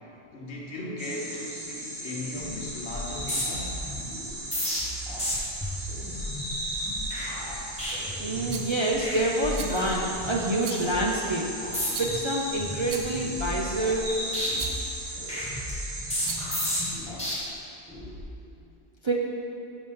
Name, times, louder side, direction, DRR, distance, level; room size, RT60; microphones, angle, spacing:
voice 1, 0.3-3.8, left 1 dB, 80° left, -2 dB, 1.3 m, -37 dB
sound 1, 1.0-16.9, right 1 dB, 60° right, 1.3 m, -37 dB
sound 2, 2.3-2.6 2.9-8.6 8.9-9.2 9.4-10.4 10.8-11.1 11.6-12.2 12.6-14.1 14.3-17.3 17.9-18.2, left 1 dB, 5° left, 1.5 m, -33 dB
voice 2, 8.2-11.5 12.0-14.1 19.0-19.1, right 1 dB, 40° right, -3 dB, 0.4 m, -27 dB
Rattle, 8.5-8.8 9.5-10.0 10.6-11.0 11.9-12.3 12.9-13.3 14.5-14.9 16.1-16.6, right 7 dB, 80° right, 0.9 m, -39 dB
6.0 x 5.0 x 5.5 m, 2.8 s
omnidirectional pair, 1.1 m